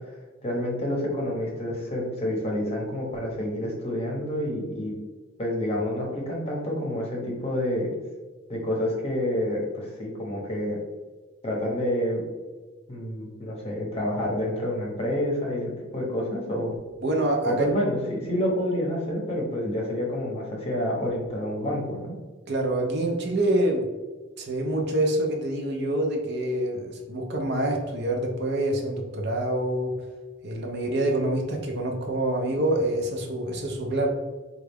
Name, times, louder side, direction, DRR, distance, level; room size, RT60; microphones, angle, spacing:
voice 1, 0.4-4.9 5.4-7.9 8.5-10.8 11.4-12.2 12.9-16.8 17.5-22.1, left 1 dB, 30° left, -2 dB, 0.8 m, -28 dB
voice 2, 17.0-17.8 22.5-23.9 24.4-30.0 30.4-34.1, right 1 dB, 50° right, 1 dB, 0.6 m, -26 dB
4.1 x 2.3 x 3.4 m, 1.3 s
head